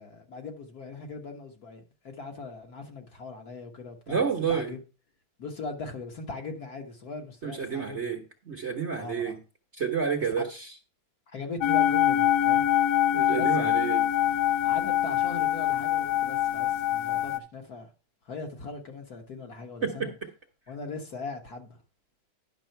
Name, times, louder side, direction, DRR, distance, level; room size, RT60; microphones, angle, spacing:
voice 1, 0.0-4.8 5.4-8.1 9.0-9.4 10.2-10.4 11.3-12.7 13.4-13.8 14.6-17.9 18.3-20.1 20.7-21.8, left 3 dB, 50° left, 1.8 m, -40 dB
voice 2, 4.1-4.7 7.4-9.4 9.7-10.7 13.1-14.0 19.8-20.1, right 6 dB, 40° right, 1.2 m, -29 dB
sound 1, 11.6-17.4, left 11 dB, 70° left, 1.0 m, -24 dB
10.5 x 6.2 x 4.5 m
omnidirectional pair, 2.2 m